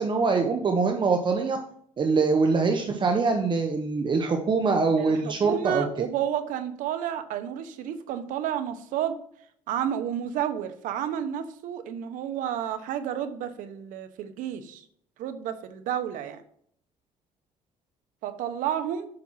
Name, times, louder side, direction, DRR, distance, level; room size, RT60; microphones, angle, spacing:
voice 1, 0.0-1.6 2.0-5.9, right 4 dB, 35° right, 4 dB, 1.1 m, -24 dB
voice 2, 5.0-9.2 9.7-14.8 15.2-16.4 18.2-19.1, right 10 dB, 80° right, 9 dB, 1.0 m, -31 dB
7.8 x 5.9 x 5.7 m, 0.64 s
cardioid pair, 105°, 13 cm